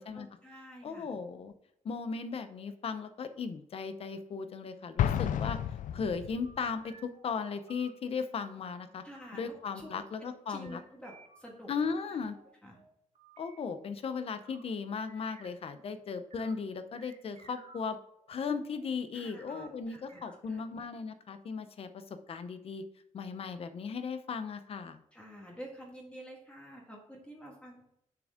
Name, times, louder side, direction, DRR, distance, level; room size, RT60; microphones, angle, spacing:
voice 1, 0.0-1.1 9.0-9.9 10.2-11.7 12.1-12.3 12.6-12.8 19.1-20.2 20.5-20.6 25.1-27.8, equal, 10° left, -2 dB, 1.6 m, -49 dB
voice 2, 0.8-1.5 1.8-5.6 5.9-9.0 9.3-10.8 11.7-12.4 13.4-18.0 18.3-22.8 23.1-25.0, left 5 dB, 50° left, 10 dB, 0.7 m, -37 dB
sound 1, 4.9-5.6 6.0-7.9 9.1-9.4 9.8-10.4 10.6-15.9 16.2-16.5 16.9-18.8 19.4-20.7, right 4 dB, 60° right, 1.5 m, -58 dB
Explosion, 5.0-6.6, left 10 dB, 85° left, 0.5 m, -31 dB
7.1 x 6.3 x 3.6 m, 0.78 s
wide cardioid pair, 170°, 13 cm